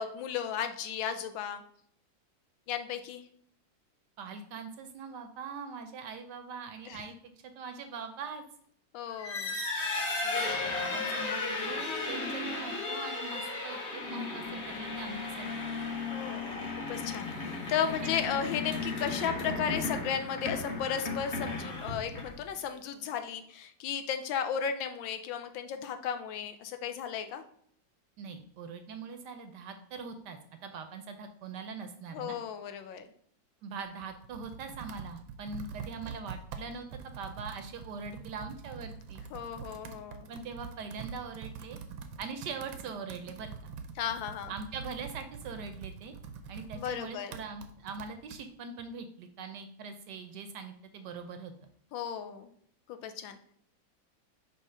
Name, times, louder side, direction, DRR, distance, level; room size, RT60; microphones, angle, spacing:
voice 1, 0.0-1.6 2.7-3.2 6.9-7.0 8.9-9.6 10.2-10.8 16.1-27.4 32.1-33.1 39.3-40.3 44.0-44.5 46.7-47.3 51.9-52.5 52.9-53.4, left 8 dB, 85° left, 8 dB, 1.4 m, -35 dB
voice 2, 4.2-7.2 7.4-8.4 10.6-15.5 17.9-18.0 28.2-32.4 33.6-39.2 40.3-41.8 42.2-43.5 44.5-46.1 46.5-51.5, right 5 dB, 70° right, 7 dB, 1.1 m, -42 dB
sound 1, 9.1-22.5, left 3 dB, 35° left, 1.5 m, -35 dB
Computer keyboard, 33.8-48.4, right 6 dB, 90° right, 1.5 m, -45 dB
5.6 x 3.0 x 5.5 m, 0.63 s
omnidirectional pair, 2.1 m